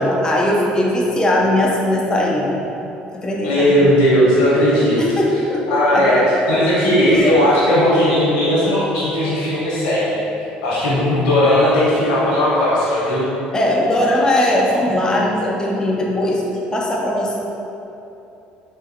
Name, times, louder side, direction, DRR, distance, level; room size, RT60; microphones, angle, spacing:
voice 1, 0.0-2.7 3.1-3.7 5.0-6.3 7.1-7.3 7.7-7.8 13.5-16.4 16.7-17.4, left 1 dB, 20° left, -2 dB, 0.5 m, -19 dB
voice 2, 3.4-5.0 5.7-10.2 10.6-13.3, left 1 dB, 85° left, -8 dB, 1.1 m, -16 dB
4.0 x 2.5 x 2.7 m, 2.9 s
hypercardioid pair, 70°, 4 cm